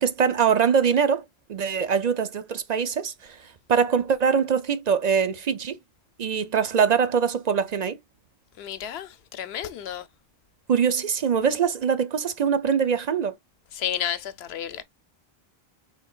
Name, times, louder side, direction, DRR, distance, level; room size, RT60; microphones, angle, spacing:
voice 1, 0.0-5.8 6.2-8.0 10.7-13.3, right 6 dB, 55° right, 0.5 m, -23 dB
voice 2, 8.6-10.0 13.8-14.8, left 10 dB, 85° left, 0.9 m, -31 dB
5.4 x 3.8 x 2.3 m
omnidirectional pair, 1.1 m